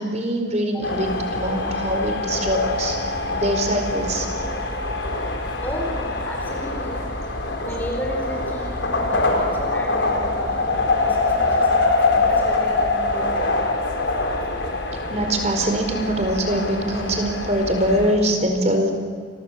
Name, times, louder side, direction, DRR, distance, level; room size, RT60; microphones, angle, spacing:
voice 1, 0.0-3.0 3.3-4.3 15.1-18.9, right 1 dB, 35° right, 5 dB, 4.8 m, -23 dB
sound 1, 0.8-18.1, left 2 dB, 75° left, 4.5 m, -24 dB
voice 2, 5.6-7.0 7.6-13.5, equal, 10° left, -1 dB, 4.2 m, -33 dB
29.0 x 23.5 x 7.7 m, 2.1 s
head